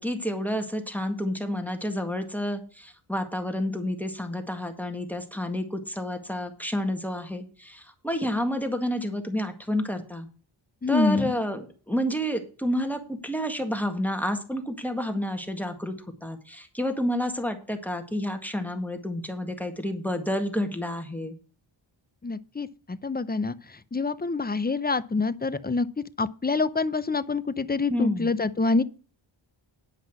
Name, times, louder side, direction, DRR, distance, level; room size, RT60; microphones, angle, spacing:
voice 1, 0.0-10.3 10.9-15.9 16.2-21.4 27.9-28.3, equal, 5° left, 1.8 m, -30 dB
voice 2, 10.8-11.3 22.2-28.8, left 3 dB, 20° left, 0.6 m, -26 dB
9.9 x 5.5 x 6.1 m
wide cardioid pair, 65°, 49 cm